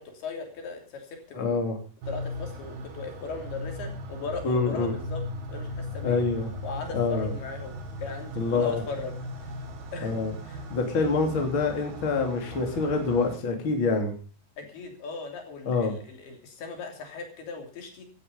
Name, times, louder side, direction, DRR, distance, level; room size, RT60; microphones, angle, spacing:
voice 1, 0.0-1.6 2.1-5.2 5.5-6.3 6.6-9.6 9.9-10.6 14.6-18.1, left 4 dB, 60° left, 3 dB, 4.9 m, -38 dB
voice 2, 1.3-1.8 4.4-4.9 6.0-6.5 6.9-7.3 8.4-8.8 10.0-10.3 10.7-14.1 15.6-15.9, left 4 dB, 30° left, 3 dB, 3.1 m, -26 dB
sound 1, 2.0-13.4, left 1 dB, 60° right, 3.9 m, -38 dB
16.5 x 12.0 x 5.3 m, 0.36 s
omnidirectional pair, 5.4 m